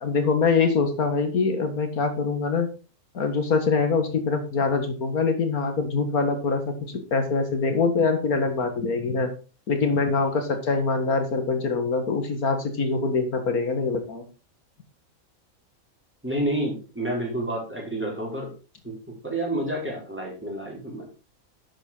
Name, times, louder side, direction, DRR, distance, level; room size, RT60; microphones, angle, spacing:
voice 1, 0.0-2.7 3.1-9.3 9.7-14.2, left 4 dB, 80° left, 7 dB, 2.2 m, -24 dB
voice 2, 16.2-18.5 18.8-18.9 19.2-21.1, right 1 dB, 10° right, -3 dB, 5.3 m, -29 dB
12.0 x 8.0 x 3.9 m, 0.33 s
omnidirectional pair, 1.5 m